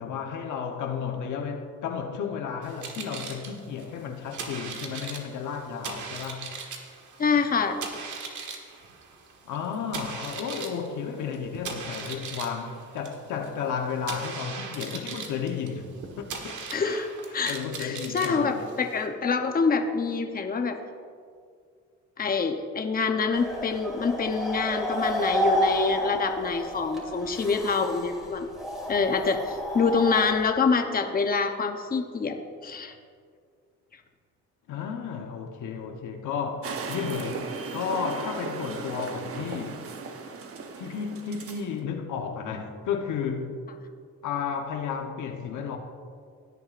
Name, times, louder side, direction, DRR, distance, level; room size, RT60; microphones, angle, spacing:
voice 1, 0.0-6.5 9.4-15.9 16.2-16.5 17.5-18.6 34.7-37.5 37.7-39.9 40.8-43.6 44.2-45.8, left 6 dB, 80° left, 1.1 m, -33 dB
sound 1, 2.6-19.1, right 5 dB, 70° right, 1.5 m, -39 dB
voice 2, 7.2-7.8 16.7-20.8 22.2-28.5 28.9-32.4 32.6-32.9, left 5 dB, 30° left, 0.9 m, -26 dB
sound 2, 23.3-30.5, equal, ahead, 2.9 m, -30 dB
sound 3, 36.6-41.7, right 4 dB, 50° right, 1.0 m, -37 dB
17.0 x 9.5 x 2.5 m
cardioid pair, 90°, 30 cm